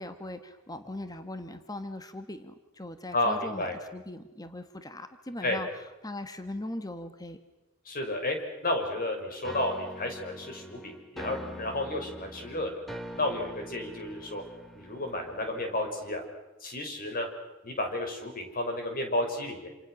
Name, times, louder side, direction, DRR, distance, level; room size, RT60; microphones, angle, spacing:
voice 1, 0.0-7.4, left 1 dB, 20° left, 9 dB, 1.5 m, -40 dB
voice 2, 3.1-3.8 5.4-5.6 7.9-8.4 8.6-12.7 13.2-14.4 14.7-16.2 16.6-17.3 17.6-19.7, left 1 dB, 45° left, 4 dB, 5.7 m, -32 dB
sound 1, 9.4-16.3, equal, ahead, 2.2 m, -44 dB
28.0 x 28.0 x 6.4 m, 1.0 s
head